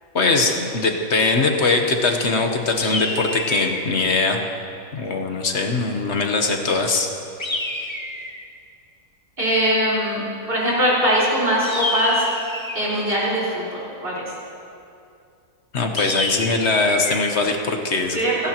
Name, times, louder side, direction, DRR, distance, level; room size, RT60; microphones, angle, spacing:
voice 1, 0.1-4.4 4.9-7.1 15.7-18.2, left 3 dB, 50° left, 4 dB, 1.2 m, -21 dB
sound 1, 2.8-3.9 7.4-8.4 11.6-12.9 16.0-17.2, left 2 dB, 20° left, 0.8 m, -27 dB
voice 2, 9.4-10.2 10.5-12.2 12.7-14.2 18.1-18.5, equal, 35° right, -8 dB, 4.3 m, -21 dB
28.5 x 11.5 x 3.0 m, 2.5 s
omnidirectional pair, 1.7 m